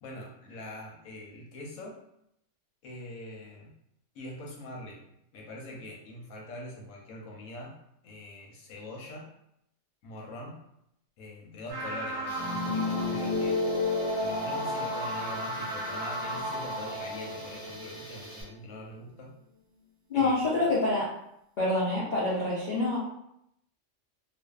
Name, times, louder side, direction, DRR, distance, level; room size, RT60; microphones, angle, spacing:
voice 1, 0.0-2.0 2.8-3.7 4.1-5.0 5.3-7.7 8.0-9.3 10.0-10.6 11.2-13.6 14.2-19.3 20.1-20.6, left 1 dB, 85° left, -1 dB, 1.1 m, -43 dB
sound 1, 11.7-18.5, left 1 dB, 10° right, 0.8 m, -32 dB
Tools, 12.3-18.4, right 1 dB, 55° right, 0.7 m, -48 dB
voice 2, 20.1-21.1 21.6-23.0, left 2 dB, 55° left, -8 dB, 0.5 m, -26 dB
2.5 x 2.3 x 2.3 m, 0.78 s
omnidirectional pair, 1.4 m